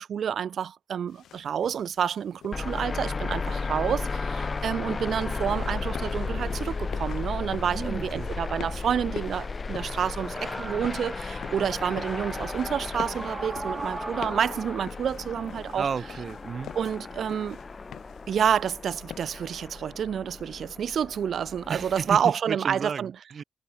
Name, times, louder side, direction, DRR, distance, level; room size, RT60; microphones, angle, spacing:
voice 1, 0.0-15.9 16.7-17.6 18.3-23.1, right 8 dB, 65° right, 0.8 m, -29 dB
sound 1, 1.1-19.5, left 10 dB, 85° left, 2.9 m, -46 dB
sound 2, 2.5-22.2, left 4 dB, 30° left, 0.5 m, -34 dB
sound 3, 6.6-6.7 9.1-14.8, right 4 dB, 30° right, 1.2 m, -40 dB
voice 2, 7.7-8.3 15.8-16.7 21.7-23.4, right 6 dB, 50° right, 4.2 m, -33 dB
cardioid pair, 110°, 0 cm